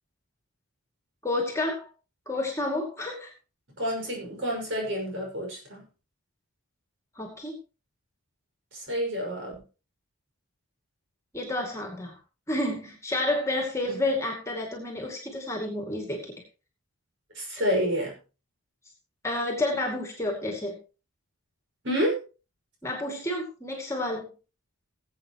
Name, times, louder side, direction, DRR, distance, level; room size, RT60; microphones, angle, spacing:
voice 1, 1.2-1.8 2.3-3.3 7.2-7.5 11.3-12.2 12.5-16.4 19.2-20.8 22.8-24.3, left 2 dB, 10° left, 1 dB, 2.3 m, -30 dB
voice 2, 3.8-5.8 8.7-9.6 13.9-14.0 17.3-18.1 21.8-22.2, equal, 55° right, 0 dB, 5.6 m, -29 dB
20.0 x 8.1 x 3.0 m, 0.33 s
head